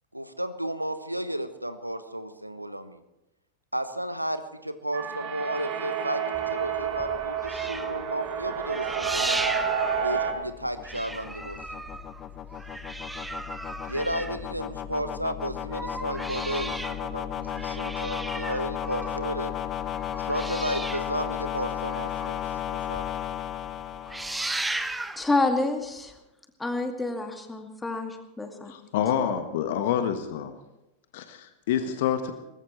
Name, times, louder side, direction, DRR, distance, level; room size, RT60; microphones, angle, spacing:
voice 1, 0.1-3.0 3.7-9.6 10.0-11.8 13.9-19.5 20.2-22.4 22.7-23.1, right 1 dB, 85° right, 11 dB, 1.1 m, -33 dB
sound 1, 4.9-10.3, right 7 dB, 40° right, 2.6 m, -30 dB
sound 2, 6.3-10.6 10.8-15.0 15.5-22.6 23.0-23.1 23.4-23.7 23.9-25.3 26.1-26.2, right 2 dB, 5° right, 0.9 m, -36 dB
sound 3, 8.7-24.9, left 10 dB, 30° left, 0.9 m, -35 dB
voice 2, 25.2-26.1 26.6-28.7, left 2 dB, 10° left, 4 dB, 2.2 m, -28 dB
voice 3, 28.7-30.5 31.1-32.3, left 9 dB, 55° left, 8 dB, 1.3 m, -27 dB
22.5 x 19.5 x 3.2 m, 0.95 s
figure-of-eight pair, 90°, 0 cm